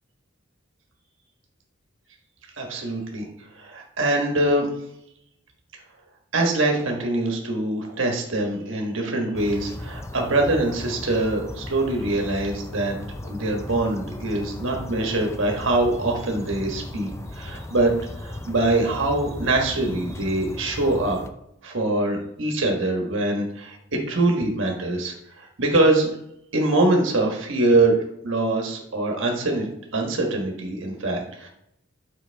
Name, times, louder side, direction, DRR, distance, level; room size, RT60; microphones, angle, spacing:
voice 1, 2.6-3.2 3.5-4.7 6.3-13.0 13.2-21.2 21.6-26.1 26.5-28.0 28.2-31.5, right 2 dB, 65° right, 1 dB, 1.3 m, -23 dB
sound 1, 9.3-21.3, left 1 dB, 15° left, 0.4 m, -36 dB
7.9 x 5.2 x 3.4 m, 0.78 s
head